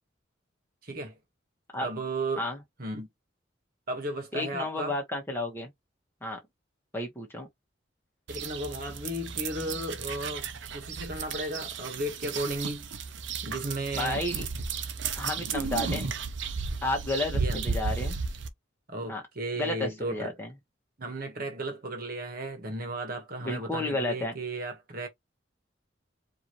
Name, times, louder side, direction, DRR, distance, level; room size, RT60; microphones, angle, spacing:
voice 1, 0.8-1.2 1.8-2.5 2.8-3.1 3.9-4.9 8.3-10.5 10.7-12.9 13.4-14.2 15.4-15.5 17.3-17.8 18.9-20.3 21.0-25.1, right 1 dB, 50° right, 1.4 m, -35 dB
voice 2, 4.3-5.7 6.2-6.4 6.9-7.5 14.0-14.4 15.2-16.1 16.8-18.2 19.1-19.2 19.6-20.5 23.4-24.3, left 2 dB, 10° left, 1.3 m, -32 dB
Dogs-walking, 8.3-18.5, right 5 dB, 70° right, 0.7 m, -34 dB
4.7 x 2.8 x 3.0 m
head